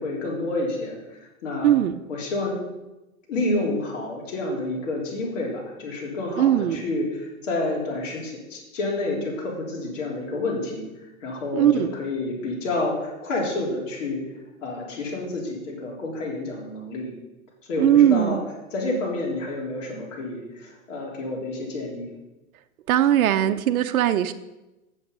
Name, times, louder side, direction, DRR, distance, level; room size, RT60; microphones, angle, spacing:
voice 1, 0.0-1.8 2.1-2.6 3.3-14.2 14.6-17.1 17.7-18.4 18.7-22.1, left 2 dB, 60° left, -2 dB, 3.6 m, -29 dB
voice 2, 1.6-2.0 6.4-6.8 11.5-11.9 17.8-18.4 22.9-24.3, right 11 dB, 75° right, 9 dB, 0.7 m, -19 dB
8.4 x 7.2 x 5.4 m, 1.0 s
hypercardioid pair, 150°, 42 cm